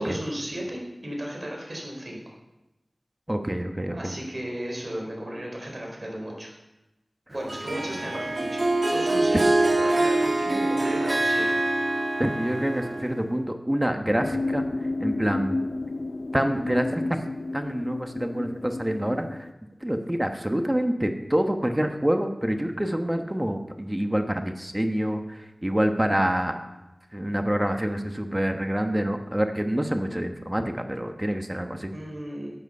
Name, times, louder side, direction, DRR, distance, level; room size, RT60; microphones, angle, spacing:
voice 1, 0.0-2.2 3.9-6.5 7.3-8.6 8.9-11.6 31.9-32.5, equal, 40° right, -1 dB, 4.5 m, -35 dB
voice 2, 3.3-4.2 12.2-14.6 15.0-15.5 16.3-17.0 17.5-19.3 19.8-26.5 27.1-31.9, equal, 15° right, 5 dB, 1.1 m, -26 dB
Harp, 7.5-13.3, right 2 dB, 60° right, 1.5 m, -24 dB
sound 1, 14.2-19.5, left 2 dB, 55° left, 0.4 m, -31 dB
12.5 x 9.2 x 5.4 m, 0.97 s
wide cardioid pair, 55°, 0 cm